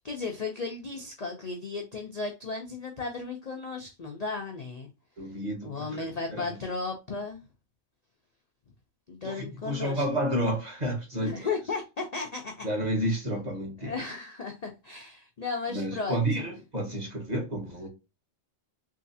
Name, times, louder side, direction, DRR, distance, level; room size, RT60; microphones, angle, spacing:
voice 1, 0.0-4.9 5.3-5.4 5.6-7.4 9.1-10.0 11.2-12.7 13.8-16.4, left 4 dB, 45° left, 0.5 m, -35 dB
voice 2, 5.2-6.6 9.2-11.5 12.6-13.9 15.7-17.9, right 1 dB, 35° right, 1.3 m, -31 dB
3.6 x 3.2 x 2.7 m
omnidirectional pair, 1.4 m